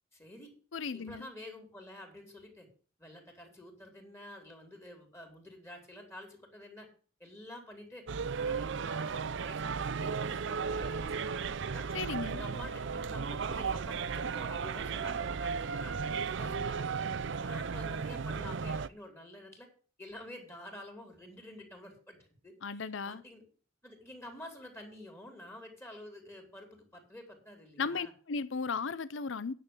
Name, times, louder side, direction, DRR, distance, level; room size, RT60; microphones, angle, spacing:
voice 1, 0.1-0.5 0.9-2.7 3.0-6.9 7.2-8.1 8.4-11.2 11.7-11.9 12.1-16.9 17.4-19.7 20.0-22.2 22.4-23.4 23.8-28.1, left 1 dB, 10° left, 3.3 m, -49 dB
voice 2, 0.7-1.3 11.9-12.4 22.6-23.2 27.8-29.5, left 5 dB, 65° left, 0.6 m, -35 dB
sound 1, 8.1-18.9, right 5 dB, 65° right, 0.5 m, -35 dB
10.0 x 6.8 x 7.9 m
head